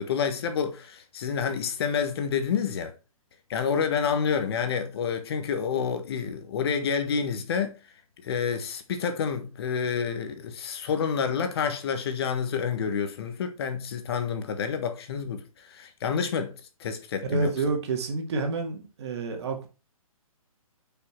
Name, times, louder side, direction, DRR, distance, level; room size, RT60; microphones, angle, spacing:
voice 1, 0.0-2.9 3.5-7.7 8.2-16.5 16.8-17.5, left 6 dB, 45° left, 1.6 m, -28 dB
voice 2, 17.2-19.7, right 3 dB, 45° right, 2.4 m, -28 dB
8.0 x 5.9 x 4.6 m
hypercardioid pair, 150°, 19 cm